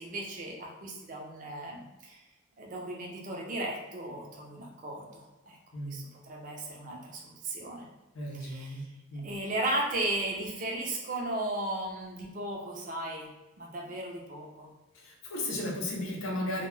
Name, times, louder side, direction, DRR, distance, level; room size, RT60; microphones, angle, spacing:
voice 1, 0.0-2.2 2.6-5.6 5.8-7.9 8.3-8.9 9.2-13.3 13.6-14.7, right 1 dB, 40° right, 0 dB, 0.5 m, -36 dB
voice 2, 8.1-9.2 14.9-16.7, left 1 dB, 90° left, 0 dB, 0.6 m, -35 dB
2.3 x 2.2 x 3.1 m, 1.1 s
head